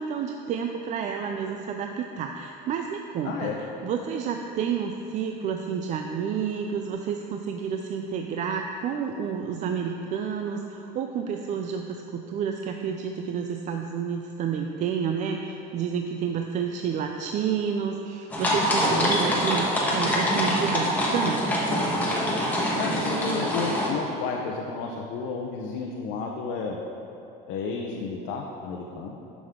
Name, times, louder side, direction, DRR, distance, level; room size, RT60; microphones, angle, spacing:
voice 1, 0.0-3.5 3.8-21.5, right 7 dB, 40° right, 4 dB, 0.4 m, -30 dB
voice 2, 3.2-3.6 22.7-26.8 27.5-29.2, left 4 dB, 70° left, 0 dB, 0.8 m, -32 dB
sound 1, 18.3-23.9, equal, 10° left, 1.3 m, -25 dB
11.0 x 6.1 x 3.7 m, 2.9 s
cardioid pair, 150°, 19 cm